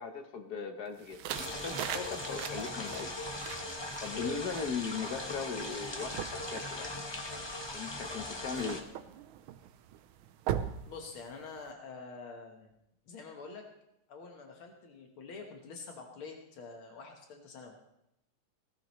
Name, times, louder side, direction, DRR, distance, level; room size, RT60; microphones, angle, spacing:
voice 1, 0.0-3.1 4.0-7.0 7.7-8.8, left 5 dB, 55° left, 6 dB, 1.3 m, -38 dB
sound 1, 1.0-11.7, right 10 dB, 80° right, 1.5 m, -42 dB
sound 2, 1.3-8.8, left 2 dB, 25° left, 0.6 m, -39 dB
voice 2, 4.1-4.4 8.6-8.8 10.9-12.7 13.1-13.7 14.1-17.8, left 4 dB, 75° left, 2 dB, 2.1 m, -47 dB
16.5 x 14.0 x 3.1 m, 0.82 s
omnidirectional pair, 2.3 m